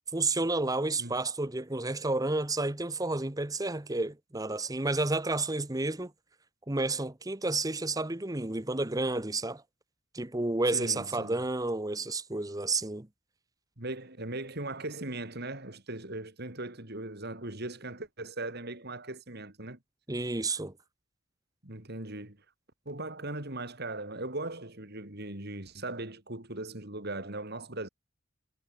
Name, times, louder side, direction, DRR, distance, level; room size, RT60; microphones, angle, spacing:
voice 1, 0.1-6.1 6.7-9.6 10.1-13.1 20.1-20.7, right 2 dB, 15° right, 1.0 m, -31 dB
voice 2, 10.7-11.4 13.8-19.8 21.6-22.4 22.9-27.9, right 2 dB, 50° right, 3.7 m, -39 dB
head